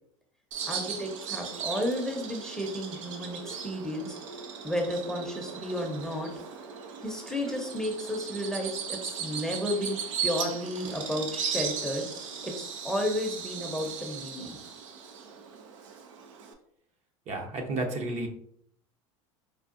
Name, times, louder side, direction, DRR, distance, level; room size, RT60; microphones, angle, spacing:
Bird vocalization bird call bird song, 0.5-16.5, right 6 dB, 80° right, 0.6 m, -37 dB
voice 1, 0.7-4.2 4.6-6.3 7.0-12.1 12.4-14.6, equal, 5° left, 0 dB, 0.7 m, -32 dB
voice 2, 17.3-18.3, right 2 dB, 45° right, 3 dB, 0.7 m, -31 dB
4.6 x 2.3 x 2.5 m, 0.67 s
supercardioid pair, 100°, 16 cm